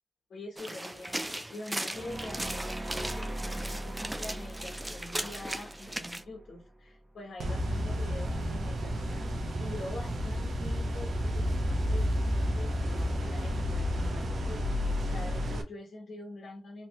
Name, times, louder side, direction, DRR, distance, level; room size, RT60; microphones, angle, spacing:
voice 1, 0.3-16.9, left 2 dB, 80° left, -1 dB, 1.0 m, -45 dB
sound 1, 0.6-6.2, right 1 dB, 15° right, 0.4 m, -38 dB
sound 2, 1.9-7.0, right 1 dB, 35° right, 1.1 m, -40 dB
sound 3, 7.4-15.6, equal, 75° right, 0.6 m, -31 dB
2.9 x 2.8 x 3.0 m, 0.28 s
wide cardioid pair, 115°, 0 cm